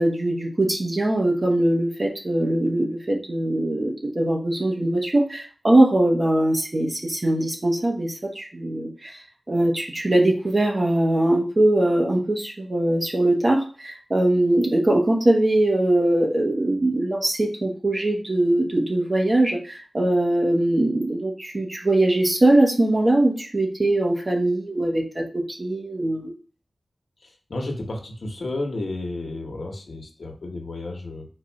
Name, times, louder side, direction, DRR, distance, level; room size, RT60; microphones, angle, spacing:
voice 1, 0.0-9.2 9.5-26.3, right 1 dB, 40° right, 0 dB, 1.1 m, -21 dB
voice 2, 27.2-31.3, left 2 dB, 75° left, 2 dB, 1.0 m, -32 dB
4.7 x 2.5 x 4.4 m, 0.40 s
wide cardioid pair, 75°, 0 cm